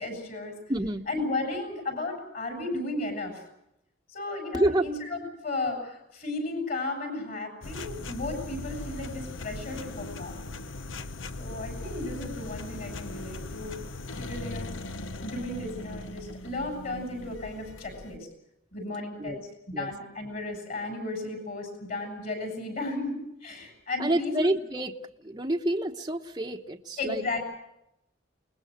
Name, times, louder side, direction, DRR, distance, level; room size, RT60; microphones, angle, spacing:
voice 1, 0.0-0.5 1.1-3.4 4.1-10.5 11.4-13.8 14.2-14.8 15.2-18.3 18.7-19.5 19.8-24.5 27.0-27.4, left 2 dB, 50° left, 4 dB, 7.3 m, -34 dB
voice 2, 0.7-1.0 4.5-4.9 19.2-19.4 19.7-19.9 24.0-25.0 25.2-27.2, right 1 dB, 20° right, 2 dB, 1.0 m, -28 dB
sound 1, 7.6-18.2, left 2 dB, 85° left, 1.0 m, -39 dB
29.0 x 20.5 x 6.5 m, 0.83 s
head